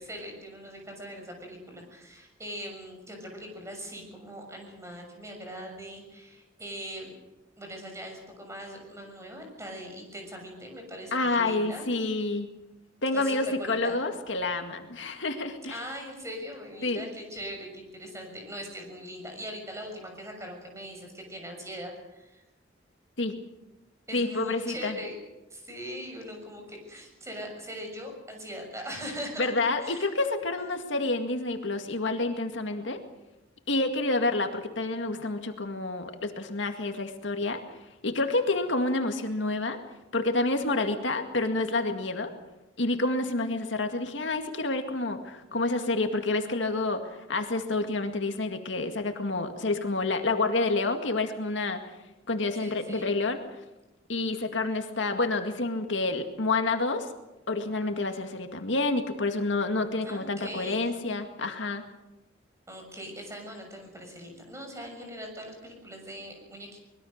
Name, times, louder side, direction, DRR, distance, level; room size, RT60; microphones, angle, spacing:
voice 1, 0.0-7.1 7.6-11.9 13.1-14.0 15.7-22.4 24.1-25.1 25.5-29.5 29.8-30.1 52.5-53.1 60.0-60.8 62.7-66.8, equal, 15° right, 3 dB, 6.6 m, -41 dB
voice 2, 11.1-12.5 13.0-15.8 16.8-17.0 23.2-23.4 24.1-25.0 29.4-33.0 33.7-37.6 38.0-39.8 40.1-42.3 42.8-47.0 47.3-51.8 52.3-53.4 54.1-57.1 57.5-61.8, left 2 dB, 75° left, 5 dB, 2.1 m, -28 dB
24.0 x 21.5 x 6.6 m, 0.99 s
head